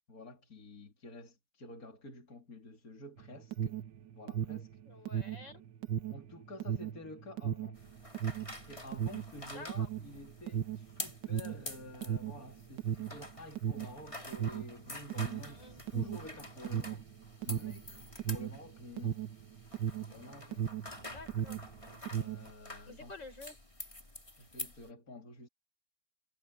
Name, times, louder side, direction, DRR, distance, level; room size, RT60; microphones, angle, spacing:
voice 1, 0.1-3.8 4.2-4.7 6.1-7.8 8.7-17.1 17.4-17.9 18.3-19.2 20.1-20.7 22.1-23.1 24.4-25.5, left 2 dB, 50° left, 3.8 m, -50 dB
Alarm, 3.2-21.0 21.2-22.5, right 9 dB, 80° right, 1.7 m, -36 dB
voice 2, 4.9-5.6 9.5-9.9 15.5-16.0 21.1-21.7 22.9-23.6, left 2 dB, 85° left, 7.0 m, -50 dB
sound 1, 7.8-24.9, left 1 dB, 15° left, 3.3 m, -48 dB
omnidirectional pair, 1.9 m